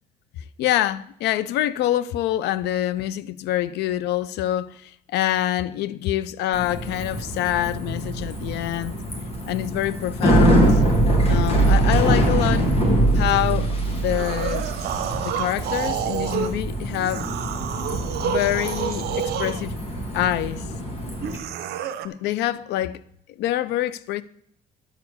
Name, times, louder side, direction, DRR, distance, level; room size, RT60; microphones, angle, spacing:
voice 1, 0.6-9.0 9.5-10.8 11.3-12.7 13.1-14.7 15.2-17.3 18.2-19.7 20.1-20.6 22.0-23.0 23.3-24.2, left 13 dB, 80° left, 0.6 m, -25 dB
Bicycle, 6.5-21.4, right 1 dB, 35° left, 2.9 m, -23 dB
sound 1, 14.1-16.6 17.0-19.6 21.2-22.1, right 9 dB, 70° right, 1.0 m, -29 dB
11.5 x 4.9 x 8.1 m
cardioid pair, 110°, 17 cm